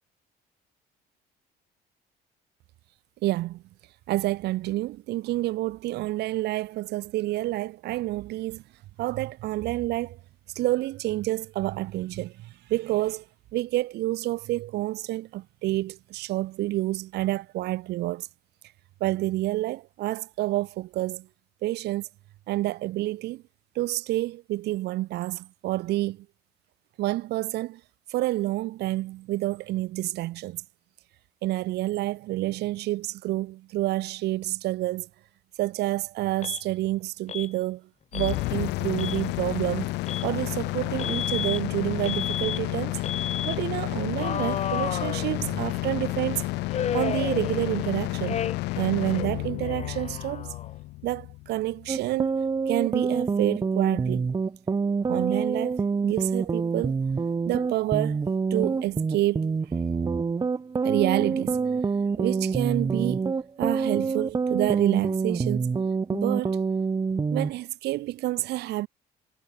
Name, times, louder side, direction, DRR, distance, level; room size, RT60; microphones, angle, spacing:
voice 1, 3.2-3.6 4.1-8.6 9.0-10.2 10.5-13.2 13.5-18.3 19.0-21.3 21.6-22.1 22.5-23.4 23.7-26.3 27.0-27.8 28.1-30.6 31.4-35.1 35.6-39.9 40.2-43.0 43.4-46.4 46.9-48.4 48.8-50.5 51.0-52.4 52.7-54.3 55.1-57.0 57.5-58.2 58.5-59.6 60.8-61.6 62.2-63.3 63.6-65.8 66.1-66.6 67.3-68.9, right 16 dB, 80° right, 2.7 m, -28 dB
Alarm, 36.4-36.6 37.3-37.5 38.1-38.3 38.9-39.2 40.1-40.3 41.0-41.6 42.0-42.6 43.0-43.6 44.2-45.7 46.7-47.9 48.2-48.8 49.1-50.8, left 8 dB, 40° left, 1.4 m, -33 dB
sound 1, 38.1-52.1, left 20 dB, 90° left, 2.7 m, -31 dB
sound 2, 51.9-67.5, right 5 dB, 25° right, 1.1 m, -26 dB
cardioid pair, 110°, 17 cm